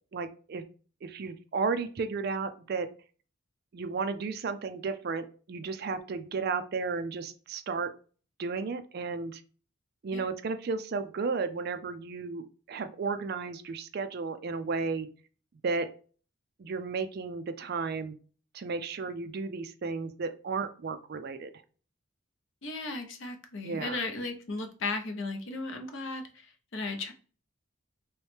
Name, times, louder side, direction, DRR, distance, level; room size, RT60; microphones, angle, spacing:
voice 1, 0.1-0.6 1.0-2.9 3.7-7.9 8.4-9.4 10.0-15.1 15.6-15.9 16.6-18.2 18.5-21.5 23.6-24.0, right 4 dB, 45° right, 10 dB, 0.3 m, -33 dB
voice 2, 22.6-26.2 26.7-27.1, left 3 dB, 60° left, 6 dB, 0.7 m, -35 dB
3.1 x 3.1 x 3.3 m, 0.39 s
head